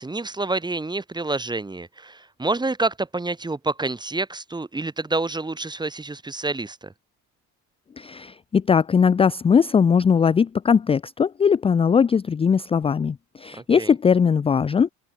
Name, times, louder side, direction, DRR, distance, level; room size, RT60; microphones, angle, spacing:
voice 1, 0.0-6.9 13.7-13.9, right 2 dB, 10° right, 0.8 m, -28 dB
voice 2, 8.0-14.9, left 6 dB, 15° left, 0.3 m, -20 dB
hypercardioid pair, 55°, 42 cm